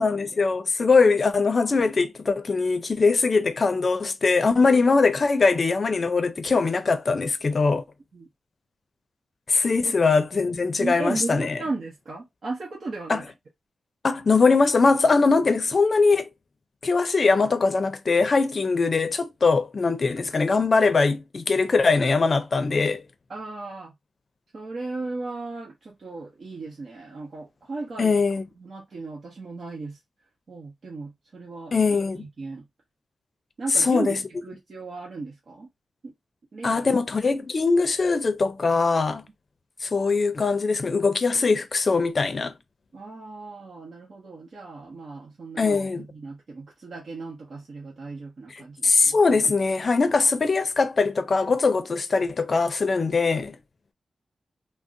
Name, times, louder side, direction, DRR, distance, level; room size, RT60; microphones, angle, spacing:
voice 1, 0.0-7.8 9.5-11.6 13.1-13.2 14.0-16.3 16.8-23.0 28.0-28.4 31.7-32.2 33.8-34.1 36.6-39.2 39.8-42.5 45.6-46.0 48.8-53.6, left 4 dB, 50° left, 0.5 m, -21 dB
voice 2, 10.7-13.3 23.3-23.9 24.5-28.1 28.6-30.0 30.5-32.7 33.6-35.7 36.0-36.1 36.5-36.9 42.9-49.2, right 3 dB, 60° right, 0.8 m, -36 dB
3.5 x 2.0 x 2.6 m
cardioid pair, 75°, 0 cm